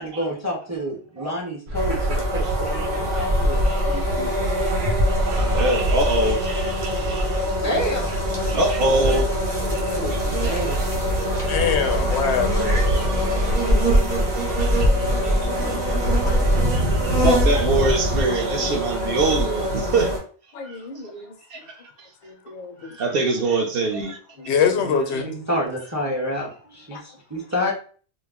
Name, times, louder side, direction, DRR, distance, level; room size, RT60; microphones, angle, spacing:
voice 1, 0.0-3.6 7.6-8.1 9.7-10.9 15.0-15.1 20.6-20.7 24.8-27.7, equal, 20° right, -2 dB, 0.5 m, -29 dB
sound 1, 1.7-18.2, equal, 80° right, 0.9 m, -25 dB
sound 2, 1.8-20.2, equal, 40° right, 1.0 m, -24 dB
voice 2, 2.7-3.3 3.6-4.0 4.6-4.8 5.1-7.6 8.5-9.3 9.7-9.8 10.1-10.8 11.3-11.5 12.8-13.6 14.8-15.8 16.7-20.1 20.6-20.8 21.5-22.1 22.8-24.2, right 2 dB, 65° right, 2 dB, 0.8 m, -25 dB
voice 3, 3.9-4.3 6.9-7.5 9.6-10.4 14.9-15.9 16.2-16.3 17.8-17.9 18.3-18.4 20.5-21.3 22.2-22.9 24.4-24.8 25.1-25.5 26.9-27.0, left 3 dB, 60° left, 5 dB, 0.6 m, -39 dB
voice 4, 11.5-13.6 18.6-18.8 24.5-25.3, left 7 dB, 90° left, 7 dB, 0.9 m, -24 dB
2.4 x 2.0 x 3.4 m, 0.40 s
omnidirectional pair, 1.1 m